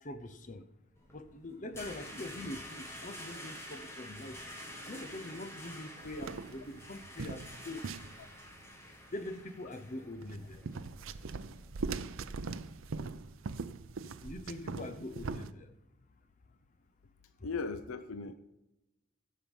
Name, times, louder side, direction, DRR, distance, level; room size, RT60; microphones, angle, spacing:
voice 1, 0.0-0.6 1.1-4.4 4.8-7.8 8.8-10.6 14.2-15.7, left 1 dB, 35° left, 8 dB, 0.8 m, -43 dB
sound 1, 1.0-12.6, equal, 10° left, 1.7 m, -49 dB
Wild animals, 1.5-4.0 4.5-7.0, right 1 dB, 30° right, 3.5 m, -59 dB
sound 2, 6.0-8.5 10.2-15.5, right 4 dB, 70° right, 0.5 m, -41 dB
voice 2, 17.4-18.3, left 4 dB, 80° left, 10 dB, 0.6 m, -37 dB
16.0 x 5.8 x 5.3 m, 0.94 s
head